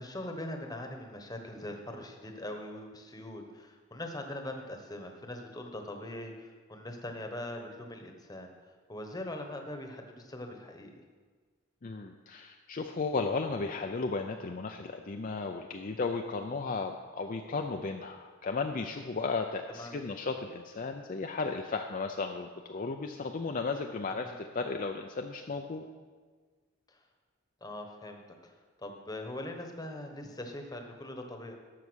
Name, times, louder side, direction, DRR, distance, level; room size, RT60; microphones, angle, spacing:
voice 1, 0.0-11.0 19.7-20.0 24.1-24.3 26.9-27.0 27.6-31.5, left 1 dB, 20° left, 4 dB, 1.1 m, -42 dB
voice 2, 11.8-25.9, left 4 dB, 40° left, 4 dB, 0.5 m, -35 dB
12.0 x 6.9 x 6.3 m, 1.5 s
head